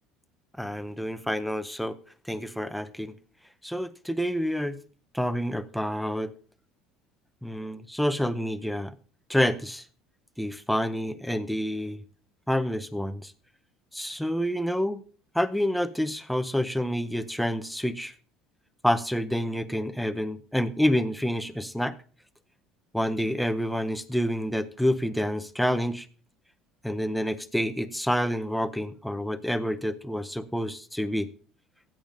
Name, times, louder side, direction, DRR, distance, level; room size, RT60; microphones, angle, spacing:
voice 1, 0.6-1.9 2.2-3.1 3.6-4.8 5.1-6.3 7.4-8.9 9.3-9.8 10.4-12.0 12.5-13.3 13.9-15.0 15.3-18.1 18.8-21.9 22.9-26.1 26.8-31.3, equal, ahead, 0.7 m, -28 dB
16.0 x 8.9 x 2.6 m
supercardioid pair, 95°, 0 cm